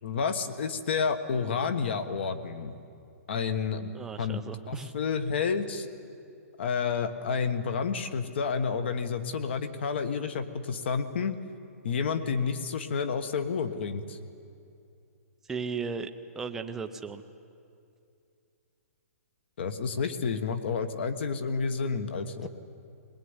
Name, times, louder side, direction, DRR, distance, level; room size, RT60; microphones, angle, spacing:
voice 1, 0.0-2.7 3.3-3.9 4.2-5.9 6.6-11.4 11.8-14.2 19.6-22.5, left 5 dB, 45° left, 11 dB, 1.4 m, -30 dB
voice 2, 3.9-4.9 15.5-16.1 16.3-17.2, right 5 dB, 5° right, 6 dB, 0.5 m, -36 dB
22.0 x 20.5 x 9.7 m, 2.5 s
hypercardioid pair, 175°, 8 cm